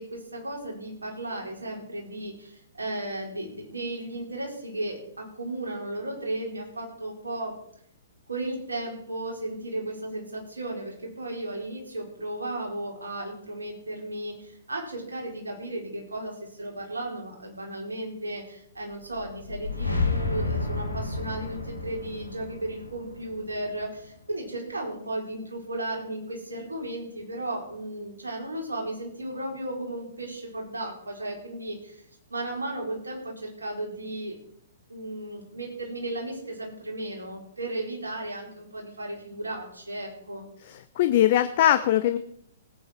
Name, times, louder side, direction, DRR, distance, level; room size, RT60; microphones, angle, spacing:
voice 1, 0.0-7.6 8.3-32.0 32.3-34.4 34.9-40.5, right 1 dB, 75° right, -1 dB, 4.9 m, -35 dB
sound 1, 19.1-24.2, left 3 dB, 85° left, 2.7 m, -31 dB
voice 2, 40.7-42.2, left 12 dB, 45° left, 11 dB, 0.7 m, -21 dB
18.5 x 9.3 x 4.6 m, 0.67 s
figure-of-eight pair, 115°, 0 cm